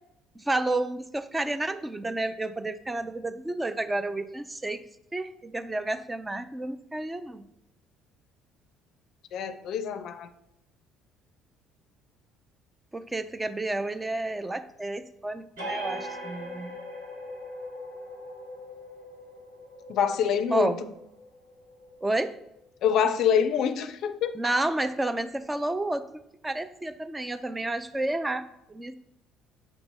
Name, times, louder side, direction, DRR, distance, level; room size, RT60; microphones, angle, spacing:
voice 1, 0.4-4.9 5.1-7.4 12.9-16.8 20.5-20.8 22.0-22.4 24.3-29.0, right 2 dB, 15° right, 11 dB, 0.5 m, -30 dB
voice 2, 9.3-10.3 19.9-20.7 22.8-24.3, left 8 dB, 60° left, 10 dB, 0.4 m, -25 dB
sound 1, 15.6-22.8, equal, 85° right, 1.7 m, -41 dB
7.0 x 3.0 x 5.2 m, 0.82 s
hypercardioid pair, 60°, 0 cm